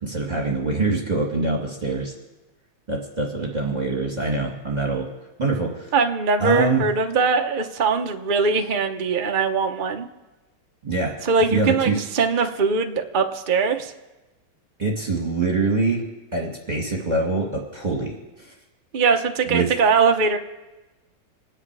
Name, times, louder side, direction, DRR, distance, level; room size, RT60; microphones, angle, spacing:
voice 1, 0.0-2.1 2.9-5.1 5.4-5.9 6.4-6.8 10.8-11.2 11.5-12.0 14.8-16.0 16.3-18.2 18.5-18.6 19.5-19.7, right 3 dB, 20° right, 0 dB, 2.1 m, -24 dB
voice 2, 5.9-10.1 11.2-13.9 18.9-20.4, right 4 dB, 70° right, 4 dB, 0.4 m, -21 dB
26.5 x 9.8 x 4.7 m, 1.1 s
omnidirectional pair, 2.2 m